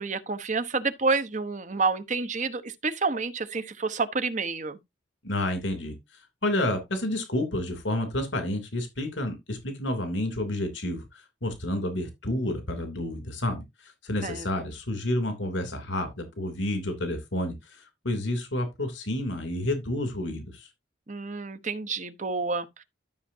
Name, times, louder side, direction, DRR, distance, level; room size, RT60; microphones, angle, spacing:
voice 1, 0.0-4.8 14.2-14.5 21.1-22.8, right 4 dB, 40° right, 1.0 m, -29 dB
voice 2, 5.2-5.9 6.4-20.7, left 1 dB, 80° left, 3.0 m, -30 dB
13.0 x 6.7 x 2.7 m
head